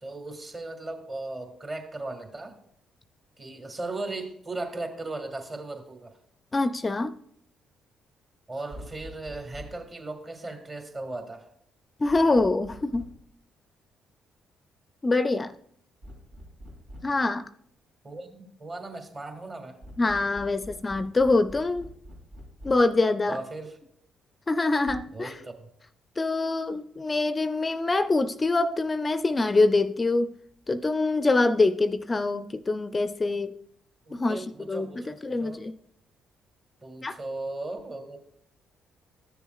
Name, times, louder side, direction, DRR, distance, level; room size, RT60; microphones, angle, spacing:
voice 1, 0.0-2.6 3.4-6.1 8.5-11.5 18.0-19.8 23.3-23.8 25.1-25.7 34.1-35.6 36.8-38.3, right 2 dB, 35° right, 1.8 m, -37 dB
voice 2, 6.5-7.1 12.0-13.1 15.0-15.5 17.0-17.4 20.0-21.9 22.6-23.4 24.5-25.3 26.2-30.3 30.7-33.6 34.1-34.9 35.2-35.7 37.0-37.1, left 3 dB, 30° left, 0.4 m, -24 dB
sound 1, 8.7-9.9 12.1-13.3 16.0-17.3 19.8-23.0 24.9-25.0, equal, 80° right, 2.9 m, -45 dB
13.0 x 6.9 x 2.4 m
supercardioid pair, 55°, 0 cm